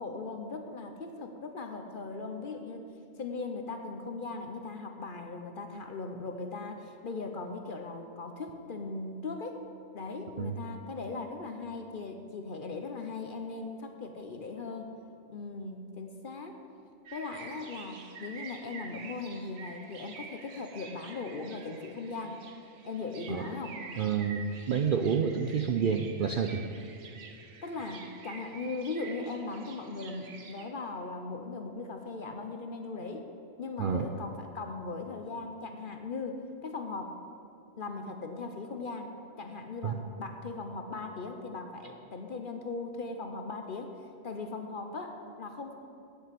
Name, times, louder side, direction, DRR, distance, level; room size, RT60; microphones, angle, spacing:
voice 1, 0.0-2.9 3.2-9.6 9.9-14.9 15.3-16.6 17.1-22.4 22.8-23.9 27.6-33.3 33.6-37.2 37.8-44.0 44.2-45.8, left 3 dB, 50° left, 5 dB, 0.8 m, -39 dB
sound 1, 17.1-30.6, right 5 dB, 90° right, 1.4 m, -48 dB
voice 2, 24.0-26.6 33.8-34.1 39.8-40.0, right 6 dB, 60° right, 5 dB, 0.5 m, -29 dB
8.5 x 7.6 x 8.3 m, 2.6 s
omnidirectional pair, 1.4 m